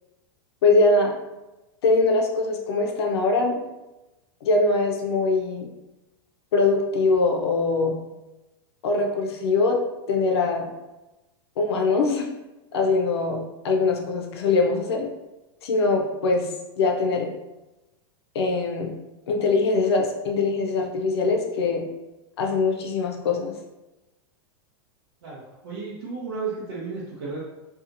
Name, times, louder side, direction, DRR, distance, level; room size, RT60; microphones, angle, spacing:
voice 1, 0.6-1.1 1.8-3.6 4.4-5.7 6.5-8.0 8.8-9.8 10.1-10.7 11.6-12.3 12.7-15.1 15.6-16.5 16.8-17.3 18.3-18.9 19.3-21.8 22.4-23.5, left 3 dB, 90° left, 1 dB, 0.6 m, -22 dB
voice 2, 25.2-27.4, right 4 dB, 70° right, -7 dB, 0.7 m, -33 dB
2.8 x 2.3 x 2.5 m, 1.0 s
supercardioid pair, 155°, 13 cm